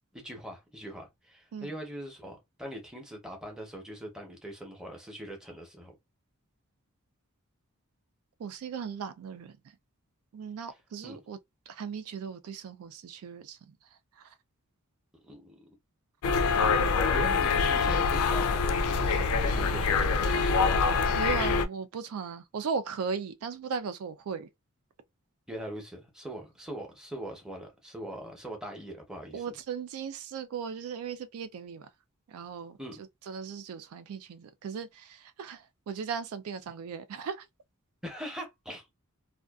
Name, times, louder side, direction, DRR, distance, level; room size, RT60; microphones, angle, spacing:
voice 1, 0.1-5.9 11.0-11.2 15.2-15.7 16.9-20.7 25.5-29.4 32.8-32.9 38.0-38.9, equal, 5° right, 0.7 m, -41 dB
voice 2, 8.4-9.8 10.3-11.4 11.7-14.3 19.6-19.7 21.2-24.5 29.3-31.9 32.3-37.5, right 6 dB, 75° right, 0.3 m, -37 dB
sound 1, 16.2-21.7, left 5 dB, 80° left, 0.4 m, -25 dB
2.5 x 2.2 x 2.3 m
head